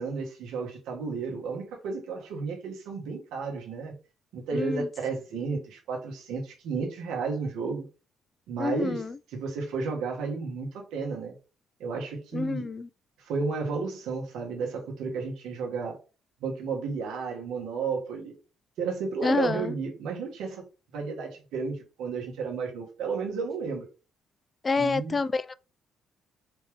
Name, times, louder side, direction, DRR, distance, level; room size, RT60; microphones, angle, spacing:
voice 1, 0.0-4.0 4.3-7.9 8.5-9.0 9.3-11.4 11.8-12.7 13.2-16.0 16.4-18.3 18.8-20.6 20.9-23.9 24.8-25.2, right 4 dB, 85° right, 1.5 m, -32 dB
voice 2, 4.5-4.9 8.6-9.1 12.3-12.9 19.2-19.7 24.6-25.5, left 4 dB, 25° left, 0.3 m, -28 dB
4.2 x 3.4 x 3.5 m
cardioid pair, 115°, 0 cm